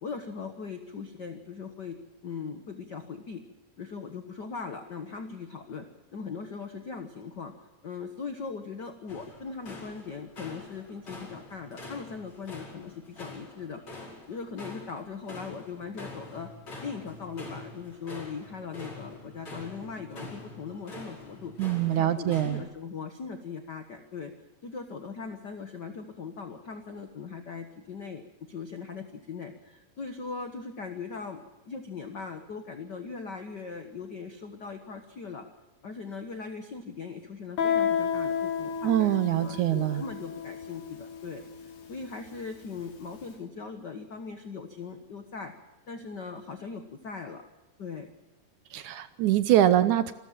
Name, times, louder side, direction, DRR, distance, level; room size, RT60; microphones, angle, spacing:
voice 1, 0.0-1.9 2.2-3.4 3.8-5.9 6.1-7.5 7.8-13.8 14.3-16.5 16.8-21.5 21.9-24.3 24.6-35.5 35.8-41.4 41.9-45.5 45.9-47.5 47.8-48.1, left 5 dB, 80° left, 6 dB, 0.9 m, -39 dB
sound 1, 9.1-22.6, left 2 dB, 35° left, 5.6 m, -45 dB
voice 2, 21.6-22.6 38.8-40.0 48.7-50.1, right 12 dB, 70° right, 12 dB, 2.0 m, -24 dB
Guitar, 37.6-43.0, left 7 dB, 60° left, 4.3 m, -32 dB
26.5 x 13.5 x 7.5 m, 0.99 s
omnidirectional pair, 4.0 m